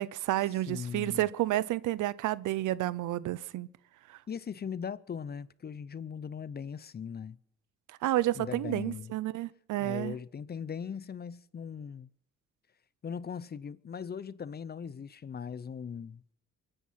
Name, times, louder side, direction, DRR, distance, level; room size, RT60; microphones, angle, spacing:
voice 1, 0.0-3.7 4.1-4.2 8.0-10.2, right 15 dB, 80° right, 0.7 m, -30 dB
voice 2, 0.7-1.2 4.3-7.4 8.3-9.1 9.8-12.1 13.0-16.2, left 7 dB, 35° left, 0.6 m, -39 dB
23.5 x 10.5 x 5.7 m
cardioid pair, 90°, 30 cm